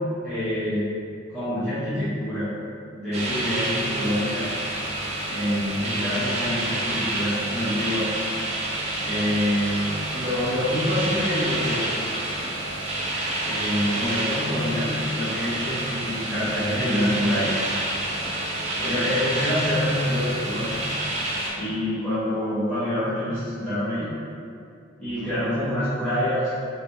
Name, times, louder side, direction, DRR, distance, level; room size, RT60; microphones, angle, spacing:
voice 1, 0.2-0.9 1.3-2.5 3.0-4.5 5.2-8.1 9.0-12.0 13.4-17.6 18.4-18.5 18.8-20.9 21.5-24.1 25.0-26.5, left 1 dB, ahead, -18 dB, 0.9 m, -26 dB
sound 1, 3.1-21.5, right 1 dB, 35° right, 0.7 m, -28 dB
3.4 x 2.6 x 3.4 m, 2.4 s
head